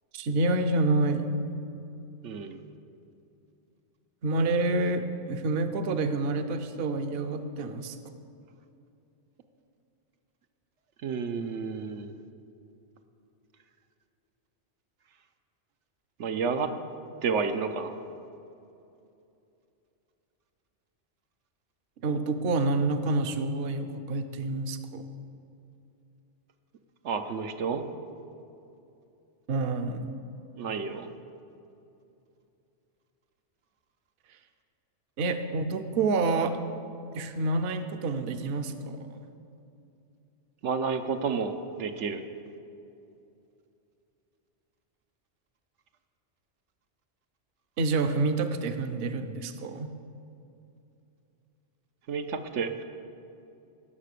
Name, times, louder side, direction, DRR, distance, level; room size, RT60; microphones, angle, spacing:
voice 1, 0.1-1.3 4.2-8.0 22.0-25.0 29.5-30.1 35.2-36.5 37.1-39.3 47.8-49.9, right 3 dB, 60° right, 8 dB, 0.9 m, -28 dB
voice 2, 2.2-2.6 11.0-12.2 16.2-16.7 17.2-18.0 27.0-27.8 30.6-31.1 40.6-42.2 52.1-52.8, right 5 dB, 85° right, 7 dB, 1.1 m, -30 dB
17.5 x 6.8 x 6.6 m, 2.7 s
omnidirectional pair, 1.2 m